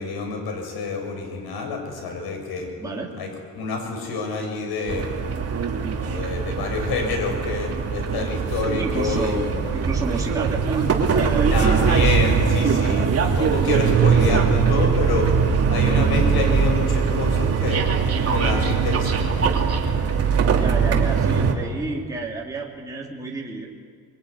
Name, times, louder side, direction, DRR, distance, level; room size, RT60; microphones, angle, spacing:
voice 1, 0.0-2.7 3.2-3.3 3.6-5.1 5.8-9.4 11.5-17.9 18.3-19.4, left 4 dB, 75° left, 4 dB, 7.0 m, -28 dB
voice 2, 2.8-3.1 8.8-11.7 20.5-23.7, right 3 dB, 10° right, -3 dB, 3.3 m, -30 dB
sound 1, 4.9-21.5, right 6 dB, 40° right, 2.8 m, -21 dB
25.5 x 22.5 x 9.7 m, 2.1 s
cardioid pair, 160°, 38 cm